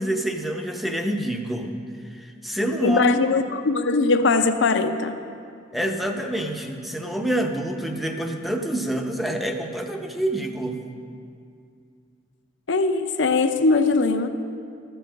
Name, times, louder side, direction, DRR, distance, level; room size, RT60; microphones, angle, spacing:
voice 1, 0.0-1.7 2.1-3.0 5.7-10.8, right 1 dB, ahead, 4 dB, 0.7 m, -27 dB
voice 2, 2.8-5.1 12.7-14.3, left 3 dB, 70° left, 9 dB, 0.6 m, -20 dB
13.5 x 6.9 x 6.3 m, 2.4 s
head